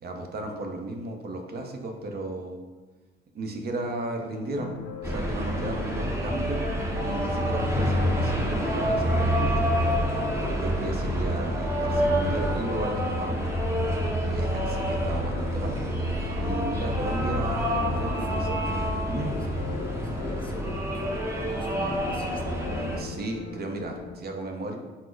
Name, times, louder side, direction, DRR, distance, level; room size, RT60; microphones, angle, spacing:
voice 1, 0.0-2.6 3.3-4.7 5.0-6.7 7.0-9.5 10.4-13.5 14.2-15.7 16.4-18.5 19.1-19.3 22.9-24.8, right 2 dB, 50° right, 3 dB, 0.6 m, -34 dB
sound 1, 4.6-24.2, left 6 dB, 85° left, 0.5 m, -41 dB
sound 2, 5.0-23.0, equal, 15° right, 0.7 m, -27 dB
voice 2, 16.8-17.5 17.9-18.6 19.3-21.0 21.3-22.6, left 2 dB, 25° left, 3 dB, 0.5 m, -41 dB
4.2 x 2.0 x 4.5 m, 1.3 s
cardioid pair, 90°, 20 cm